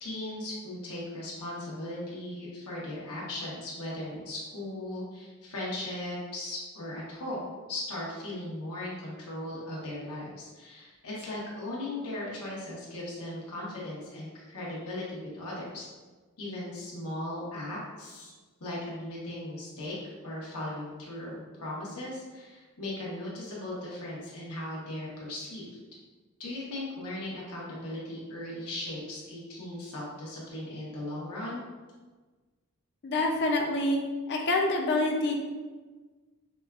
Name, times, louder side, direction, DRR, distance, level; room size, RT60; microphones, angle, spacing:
voice 1, 0.0-15.9 16.4-18.3 18.6-19.9 20.2-25.7 26.4-31.6, left 1 dB, 85° left, -5 dB, 1.1 m, -38 dB
voice 2, 33.0-34.0 34.3-35.4, left 2 dB, 50° left, 2 dB, 0.5 m, -26 dB
5.1 x 2.3 x 2.3 m, 1.3 s
head